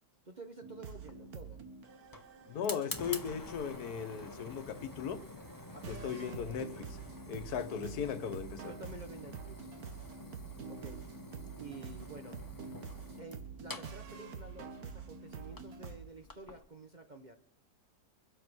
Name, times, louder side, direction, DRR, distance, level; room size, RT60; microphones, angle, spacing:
voice 1, 0.3-1.6 5.7-6.9 8.7-9.8 10.7-11.1 11.6-12.4 13.2-17.3, right 2 dB, 35° right, 0.8 m, -50 dB
sound 1, 0.6-16.0, right 5 dB, 70° right, 1.7 m, -48 dB
Fire, 0.9-16.6, left 2 dB, 15° left, 0.8 m, -49 dB
voice 2, 2.5-5.2 5.9-7.0 7.3-8.7, left 7 dB, 75° left, 1.5 m, -37 dB
23.0 x 8.1 x 6.1 m
omnidirectional pair, 1.7 m